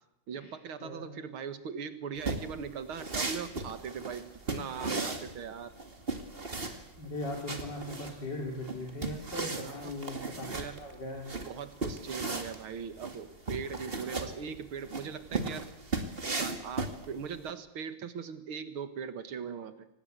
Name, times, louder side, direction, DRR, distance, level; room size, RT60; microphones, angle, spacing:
voice 1, 0.3-5.7 9.5-9.9 10.6-10.8 11.3-15.7 16.2-19.9, right 6 dB, 85° right, 11 dB, 2.4 m, -40 dB
voice 2, 0.8-1.2 7.0-11.3, left 1 dB, 55° left, 1 dB, 4.2 m, -39 dB
sound 1, 2.2-17.4, right 3 dB, 30° right, 2.3 m, -37 dB
25.0 x 19.0 x 8.1 m, 0.85 s
omnidirectional pair, 2.2 m